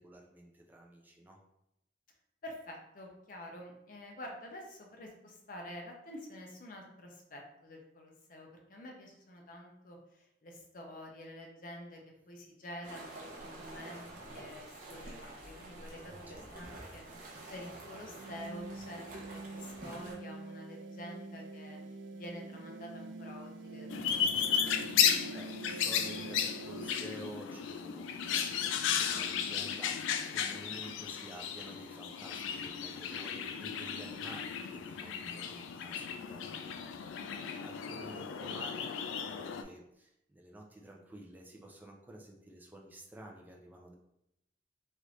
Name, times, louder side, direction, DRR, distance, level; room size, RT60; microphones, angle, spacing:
voice 1, 0.0-1.4 16.3-16.4 25.0-36.6 37.0-37.3 37.6-43.9, right 1 dB, 10° right, 0 dB, 0.4 m, -51 dB
voice 2, 2.4-12.0 12.3-17.0 17.5-21.8 22.1-24.4, left 1 dB, 45° left, 1 dB, 0.6 m, -48 dB
sound 1, 12.8-20.2, right 2 dB, 45° right, 0.7 m, -48 dB
sound 2, 18.1-26.9, right 3 dB, 75° right, 0.4 m, -46 dB
sound 3, 23.9-39.6, left 8 dB, 90° left, 0.3 m, -34 dB
3.2 x 2.5 x 3.1 m, 0.82 s
head